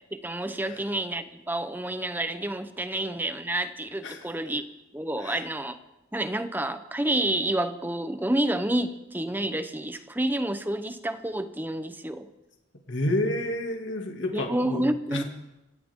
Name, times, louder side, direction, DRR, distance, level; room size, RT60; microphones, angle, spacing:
voice 1, 0.1-4.6 4.9-5.8 6.1-12.3 14.3-15.2, right 1 dB, 10° right, 10 dB, 0.8 m, -29 dB
voice 2, 12.9-15.2, left 1 dB, 60° left, 2 dB, 2.4 m, -30 dB
26.0 x 14.0 x 3.7 m, 1.0 s
head